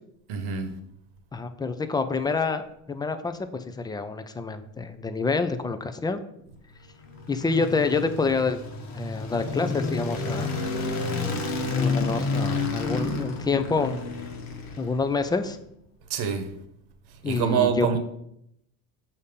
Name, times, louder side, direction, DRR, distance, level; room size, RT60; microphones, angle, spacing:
voice 1, 0.3-0.8 16.1-16.5 17.2-18.0, right 7 dB, 65° right, 1.0 m, -25 dB
voice 2, 1.3-6.2 7.3-8.6 8.9-10.5 11.8-14.0 14.8-15.6 17.2-18.0, left 4 dB, 10° left, 0.4 m, -27 dB
sound 1, 6.8-15.3, left 3 dB, 60° left, 1.2 m, -30 dB
6.6 x 2.8 x 5.1 m
supercardioid pair, 95°, 41 cm